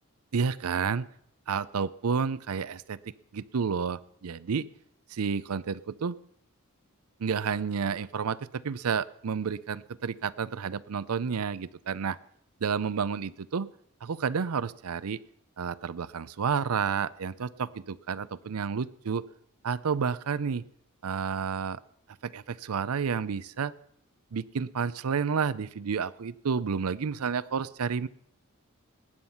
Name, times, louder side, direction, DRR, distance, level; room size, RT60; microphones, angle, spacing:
voice 1, 0.3-1.1 1.5-4.7 5.1-6.2 7.2-12.2 12.6-13.7 14.0-15.2 15.6-19.2 19.6-20.6 21.0-21.8 22.2-23.7 24.3-28.1, right 6 dB, 80° right, 19 dB, 0.5 m, -30 dB
20.0 x 9.6 x 5.6 m, 0.68 s
head